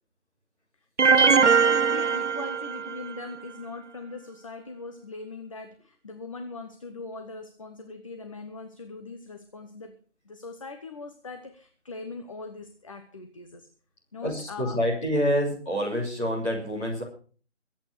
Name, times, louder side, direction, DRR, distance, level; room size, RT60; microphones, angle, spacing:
voice 1, 1.0-10.0 10.2-13.7 14.1-14.8, left 3 dB, 30° left, 7 dB, 1.0 m, -40 dB
sound 1, 1.0-3.1, right 5 dB, 75° right, 1.0 m, -21 dB
voice 2, 14.2-17.0, equal, 10° left, -5 dB, 3.4 m, -27 dB
23.0 x 8.8 x 4.9 m, 0.41 s
figure-of-eight pair, 165°, 36 cm